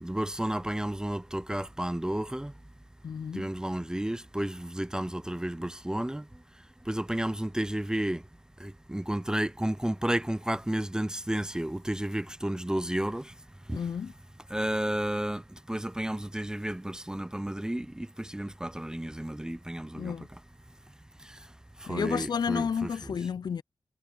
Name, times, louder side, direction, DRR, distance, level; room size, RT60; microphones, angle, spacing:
voice 1, 0.0-2.5 3.3-6.3 6.9-8.2 8.6-13.3 13.7-13.8 14.5-15.4 15.7-20.1 21.3-21.4 21.8-23.1, right 1 dB, 10° right, 0.3 m, -32 dB
voice 2, 3.0-3.5 13.7-14.1 20.0-20.3 21.9-23.6, left 6 dB, 60° left, 0.4 m, -31 dB
cardioid pair, 55°, 8 cm